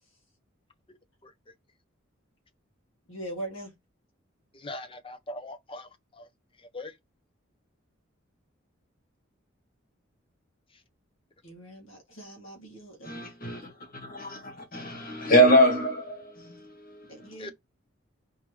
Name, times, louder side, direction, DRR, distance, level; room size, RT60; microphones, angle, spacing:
voice 1, 3.1-3.7 11.4-13.3 17.1-17.5, right 1 dB, 75° left, 2.0 m, -41 dB
voice 2, 4.5-5.9 6.2-6.3 6.7-6.9 17.4-17.5, left 2 dB, 25° left, 0.7 m, -40 dB
voice 3, 13.0-17.1, equal, 45° left, 1.6 m, -24 dB
4.4 x 3.6 x 3.2 m
head